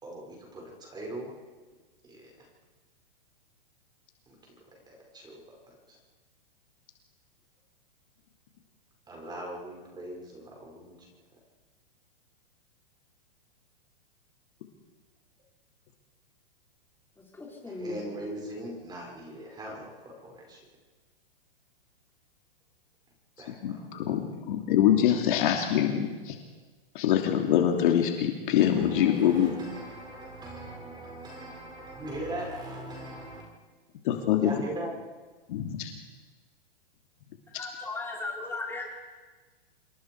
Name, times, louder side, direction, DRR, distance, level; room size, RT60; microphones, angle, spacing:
voice 1, 0.0-1.3 2.0-2.2 4.3-4.4 4.9-5.4 5.9-6.0 9.1-11.0 17.7-20.6 23.4-23.8 28.8-33.4 34.4-34.9, right 1 dB, 15° right, 0 dB, 5.8 m, -40 dB
voice 2, 17.4-18.0 37.6-38.8, left 3 dB, 5° left, -3 dB, 5.4 m, -36 dB
voice 3, 23.5-26.4 26.9-29.5 34.0-34.6 35.5-35.9 37.5-37.7, left 10 dB, 55° left, 3 dB, 2.9 m, -25 dB
27.0 x 22.5 x 4.8 m, 1.3 s
hypercardioid pair, 135°, 30 cm